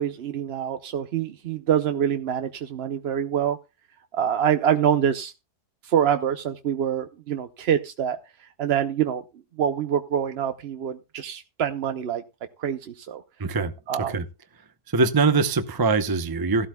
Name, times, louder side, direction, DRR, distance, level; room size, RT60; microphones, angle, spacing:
voice 1, 0.0-3.6 4.1-5.3 5.8-8.2 8.6-9.2 9.6-12.2 12.6-13.2 13.9-14.2, right 9 dB, 55° right, 0.7 m, -25 dB
voice 2, 13.4-13.7 14.1-14.2 14.9-16.7, right 4 dB, 25° right, 0.5 m, -22 dB
15.5 x 12.5 x 2.3 m
omnidirectional pair, 1.7 m